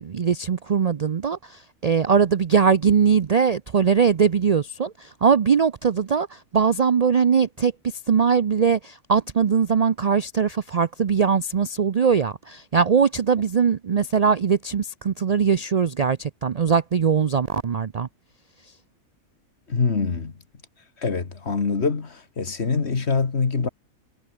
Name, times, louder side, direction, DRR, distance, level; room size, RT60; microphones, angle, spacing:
voice 1, 0.0-18.1, right 6 dB, 75° right, 0.3 m, -21 dB
voice 2, 19.7-20.4 21.0-23.7, left 4 dB, 50° left, 2.1 m, -24 dB
omnidirectional pair, 1.5 m